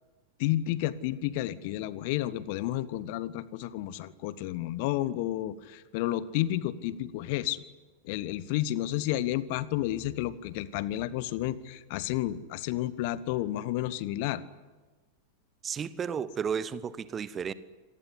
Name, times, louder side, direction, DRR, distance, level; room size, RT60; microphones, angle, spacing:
voice 1, 0.4-7.6 8.0-14.4, left 14 dB, 50° left, 17 dB, 1.1 m, -31 dB
voice 2, 15.6-17.5, right 7 dB, 25° right, 17 dB, 1.1 m, -33 dB
27.0 x 19.0 x 9.8 m, 1.2 s
figure-of-eight pair, 90°, 0 cm